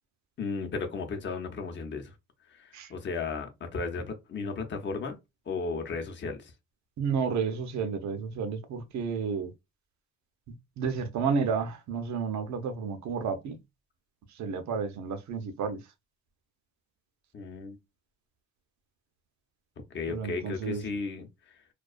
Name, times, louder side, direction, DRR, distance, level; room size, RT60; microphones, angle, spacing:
voice 1, 0.4-2.1 2.5-5.2 5.5-6.5 17.3-17.8 19.9-21.6, left 4 dB, 40° left, 0.7 m, -35 dB
voice 2, 7.0-9.5 10.5-13.6 14.3-15.8 20.1-20.8, right 5 dB, 65° right, 0.6 m, -31 dB
2.3 x 2.2 x 2.4 m
cardioid pair, 90°, 30 cm